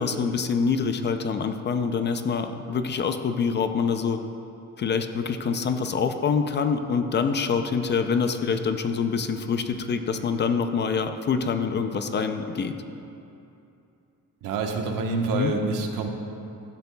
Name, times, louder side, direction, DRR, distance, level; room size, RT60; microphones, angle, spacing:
voice 1, 0.0-4.2 4.8-12.7 15.3-15.5, left 5 dB, 35° left, 8 dB, 0.4 m, -25 dB
voice 2, 14.4-16.1, right 3 dB, 85° right, 3 dB, 1.2 m, -27 dB
16.0 x 12.0 x 2.3 m, 2.7 s
cardioid pair, 175°, 32 cm